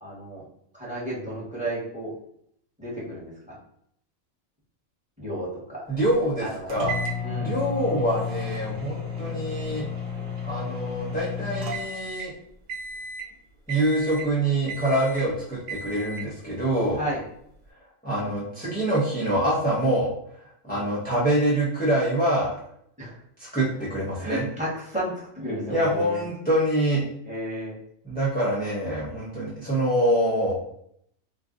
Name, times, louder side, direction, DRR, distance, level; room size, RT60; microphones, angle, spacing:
voice 1, 0.0-0.4 0.7-2.1 2.8-3.6 5.2-5.8 6.4-6.7 7.2-7.6 17.0-17.2 20.7-20.8 23.0-23.2 24.2-26.2 27.3-27.8, right 1 dB, 5° right, -6 dB, 0.9 m, -33 dB
voice 2, 5.9-7.0 7.4-9.8 10.4-12.3 13.7-17.0 18.0-20.1 20.7-22.5 23.4-24.4 25.7-27.0 28.0-30.5, right 1 dB, 10° left, -8 dB, 0.5 m, -25 dB
sound 1, 6.7-12.3 12.7-13.3 13.7-14.3 14.7-15.3 15.7-16.3, left 4 dB, 80° right, 1.0 m, -33 dB
2.5 x 2.3 x 3.6 m, 0.70 s
omnidirectional pair, 1.4 m